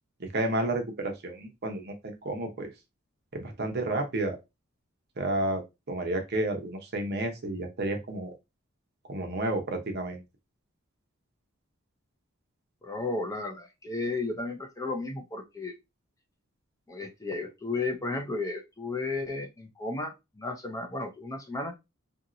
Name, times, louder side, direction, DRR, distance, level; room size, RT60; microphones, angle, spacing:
voice 1, 0.2-2.7 3.3-4.4 5.2-5.6 5.9-8.3 9.1-10.2, right 2 dB, 50° right, 4 dB, 0.8 m, -31 dB
voice 2, 12.8-15.7 16.9-21.7, left 3 dB, 15° left, 3 dB, 0.5 m, -33 dB
2.8 x 2.7 x 2.6 m, 0.22 s
head